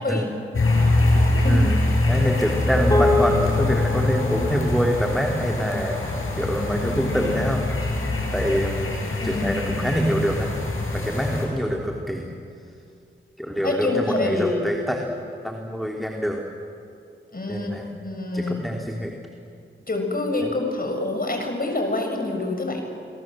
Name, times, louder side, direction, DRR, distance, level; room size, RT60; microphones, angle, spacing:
sound 1, 0.5-11.5, left 2 dB, 75° left, 6.7 m, -24 dB
voice 1, 1.1-6.0 6.4-7.6 8.3-9.0 9.2-10.5 10.9-12.3 13.4-15.0 15.4-16.4 17.5-17.8 18.3-19.2, equal, ahead, 1 dB, 3.3 m, -25 dB
sound 2, 2.9-7.4, left 2 dB, 20° left, 3.8 m, -28 dB
voice 2, 9.2-9.6 13.6-14.6 17.3-18.6 19.9-22.8, left 2 dB, 45° left, 3 dB, 6.9 m, -26 dB
29.5 x 22.5 x 7.8 m, 2.5 s
cardioid pair, 45°, 21 cm